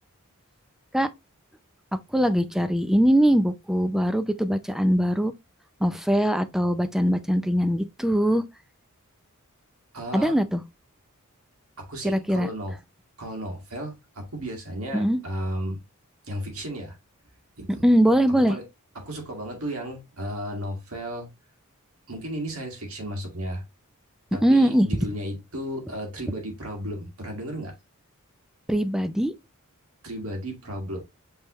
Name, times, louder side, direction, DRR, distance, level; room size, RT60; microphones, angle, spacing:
voice 1, 2.1-5.3 5.8-8.4 10.1-10.6 12.0-12.5 14.9-15.2 17.8-18.6 24.4-24.9 28.7-29.3, equal, ahead, 0.4 m, -21 dB
voice 2, 9.9-10.4 11.8-12.8 13.2-15.8 16.3-17.0 17.6-17.8 18.3-18.6 19.0-21.3 22.1-23.6 24.3-27.7 30.0-31.0, equal, 70° right, 1.9 m, -34 dB
5.5 x 3.3 x 2.9 m
head